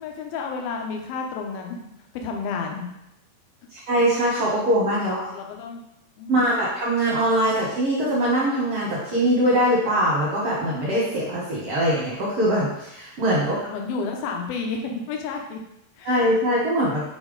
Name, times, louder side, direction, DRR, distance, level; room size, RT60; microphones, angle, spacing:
voice 1, 0.0-1.8 2.1-2.9 5.0-5.9 6.2-6.5 13.5-15.6 16.0-16.1 16.8-16.9, left 4 dB, 75° left, 2 dB, 2.4 m, -31 dB
voice 2, 3.7-5.2 6.3-13.6 16.0-17.0, right 1 dB, 70° right, -6 dB, 1.5 m, -22 dB
7.2 x 4.2 x 3.9 m, 0.85 s
omnidirectional pair, 4.8 m